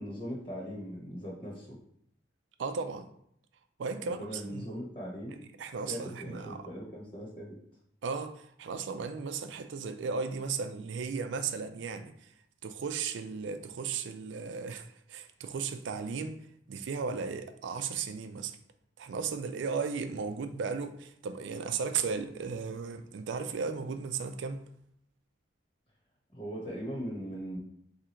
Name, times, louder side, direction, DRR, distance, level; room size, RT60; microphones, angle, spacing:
voice 1, 0.0-1.8 4.0-5.4 5.9-7.6 26.3-27.6, equal, 30° left, -4 dB, 1.3 m, -40 dB
voice 2, 2.6-3.1 3.8-4.7 5.6-6.6 8.0-12.3 12.6-16.4 16.7-18.6 19.0-24.6, right 5 dB, 80° right, 8 dB, 0.4 m, -35 dB
3.7 x 2.8 x 4.4 m, 0.68 s
head